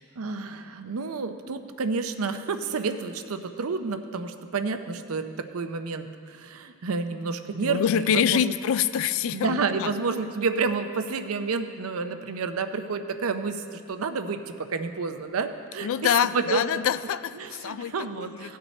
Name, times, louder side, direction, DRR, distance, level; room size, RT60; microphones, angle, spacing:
voice 1, 0.2-8.5 9.3-15.9 16.3-16.6 17.4-18.6, right 4 dB, 75° right, 9 dB, 0.6 m, -30 dB
voice 2, 7.6-9.9 15.8-18.6, left 8 dB, 65° left, 15 dB, 0.3 m, -26 dB
17.0 x 6.0 x 4.2 m, 2.4 s
head